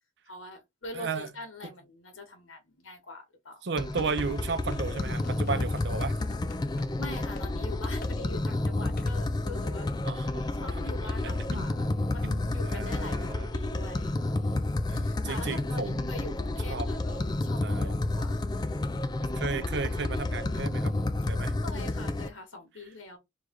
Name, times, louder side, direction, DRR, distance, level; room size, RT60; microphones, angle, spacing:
voice 1, 0.3-3.6 7.0-9.9 10.6-19.0 21.6-23.2, left 2 dB, 75° left, 1.3 m, -44 dB
voice 2, 0.9-1.3 3.6-6.2 10.1-11.7 12.2-13.5 14.9-16.3 16.7-16.9 17.6-17.9 19.3-20.9 21.3-21.5, right 4 dB, 55° right, 0.6 m, -34 dB
sound 1, 3.8-22.3, left 2 dB, 20° left, 0.3 m, -30 dB
sound 2, 4.0-6.9 7.2-7.5 8.0-8.1 9.0-9.1, left 3 dB, 50° left, 0.6 m, -49 dB
3.2 x 3.1 x 3.7 m
head